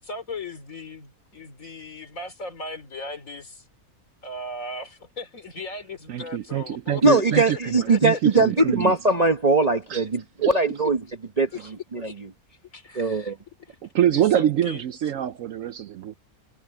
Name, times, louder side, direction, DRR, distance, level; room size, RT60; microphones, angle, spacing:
voice 1, 0.0-3.6 4.2-7.6 7.9-8.2 11.6-11.7 12.0-12.2 12.7-13.3 13.7-13.8 14.1-14.8, left 2 dB, 55° left, 3.4 m, -37 dB
voice 2, 6.1-8.9 9.9-10.0 10.4-10.6 13.8-16.1, right 11 dB, 65° right, 0.9 m, -25 dB
voice 3, 7.0-11.0 11.4-11.5 11.9-12.1 12.9-13.3, right 3 dB, 30° right, 0.9 m, -20 dB
omnidirectional pair, 1.6 m